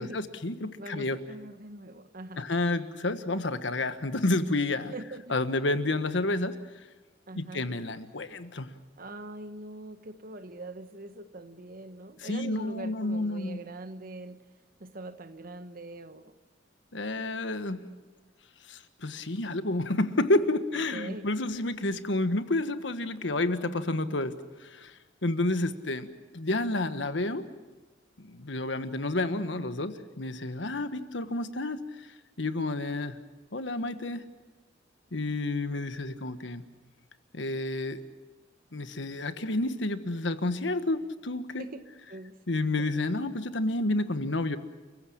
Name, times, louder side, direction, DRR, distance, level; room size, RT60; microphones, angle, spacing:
voice 1, 0.0-1.2 2.4-4.9 5.3-6.5 7.3-8.7 12.2-13.6 16.9-17.8 18.7-24.3 24.6-26.1 26.3-27.4 28.2-32.1 32.4-33.2 33.5-34.2 35.1-36.6 37.3-38.0 38.7-41.6 42.5-44.6, left 2 dB, 75° left, 10 dB, 1.4 m, -30 dB
voice 2, 0.8-2.5 4.9-5.4 7.3-7.7 9.0-14.4 14.8-16.3 20.9-21.3 41.6-41.8 42.1-42.4 42.8-43.0, right 2 dB, 50° right, 11 dB, 1.2 m, -42 dB
29.5 x 15.5 x 8.6 m, 1.3 s
head